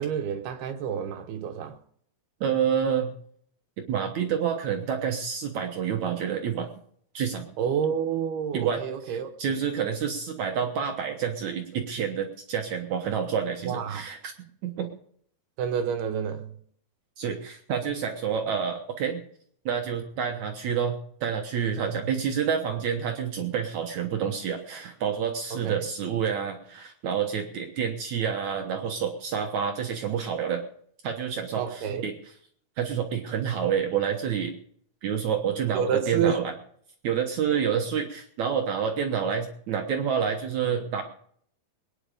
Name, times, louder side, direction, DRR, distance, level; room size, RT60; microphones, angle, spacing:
voice 1, 0.0-1.8 7.6-9.6 13.7-14.1 15.6-16.5 21.9-22.1 25.5-25.9 31.6-32.1 35.7-36.4 37.5-37.6, right 7 dB, 80° right, 2.9 m, -29 dB
voice 2, 2.4-3.1 3.8-6.7 7.1-7.5 8.5-14.3 14.6-14.9 17.2-19.2 19.7-30.6 31.0-32.1 32.8-34.5 35.0-36.5 37.0-41.0, right 7 dB, 65° right, 2.0 m, -28 dB
21.0 x 10.5 x 5.0 m
omnidirectional pair, 4.5 m